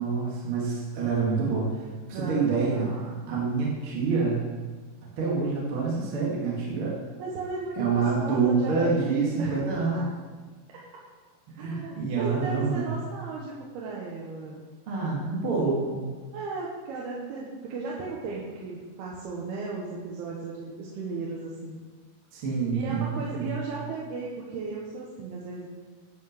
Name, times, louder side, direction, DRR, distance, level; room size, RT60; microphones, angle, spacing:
voice 1, 0.0-2.9 3.3-4.5 5.2-7.0 7.8-10.1 11.5-12.9 14.9-16.1 22.3-23.6, right 4 dB, 45° right, -4 dB, 2.0 m, -27 dB
voice 2, 2.1-3.2 7.1-9.6 9.9-10.1 11.6-14.6 16.3-21.8 22.7-25.7, right 3 dB, 80° right, -4 dB, 3.1 m, -36 dB
10.0 x 5.9 x 6.5 m, 1.4 s
omnidirectional pair, 4.4 m